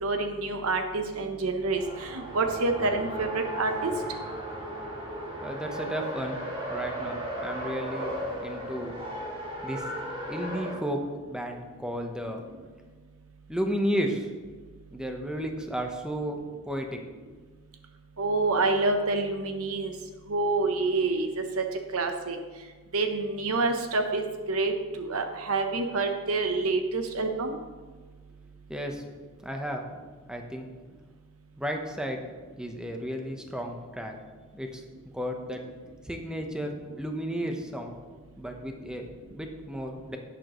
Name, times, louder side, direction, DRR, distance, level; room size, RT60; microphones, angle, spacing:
voice 1, 0.0-3.9 18.2-19.9 20.3-21.6 21.9-22.4 22.9-27.6, right 3 dB, 65° right, 5 dB, 0.9 m, -27 dB
Race car auto racing, 1.6-10.8, right 1 dB, 25° right, 2.4 m, -36 dB
voice 2, 5.4-6.4 6.7-8.1 8.4-8.9 9.6-9.8 10.3-11.0 11.3-12.4 13.5-14.3 14.9-16.4 16.6-17.0 28.7-29.0 29.4-29.8 30.3-30.7 31.6-32.2 32.6-34.1 34.5-34.8 35.1-35.6 36.0-38.0 38.4-40.2, equal, 5° right, 3 dB, 1.0 m, -33 dB
11.0 x 9.1 x 3.1 m, 1.4 s
head